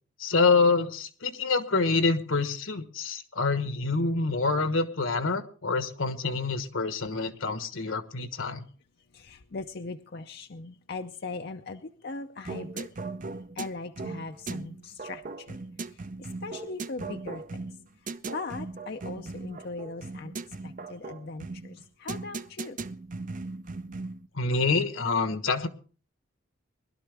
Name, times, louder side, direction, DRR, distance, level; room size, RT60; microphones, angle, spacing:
voice 1, 0.2-8.6 24.3-25.7, left 4 dB, 80° left, 10 dB, 1.3 m, -26 dB
voice 2, 9.1-12.9 13.5-15.6 15.9-17.8 18.3-22.8, left 3 dB, 55° left, 6 dB, 0.6 m, -40 dB
sound 1, 12.4-24.3, right 3 dB, 40° right, 0.6 m, -38 dB
21.0 x 12.0 x 3.4 m, 0.39 s
head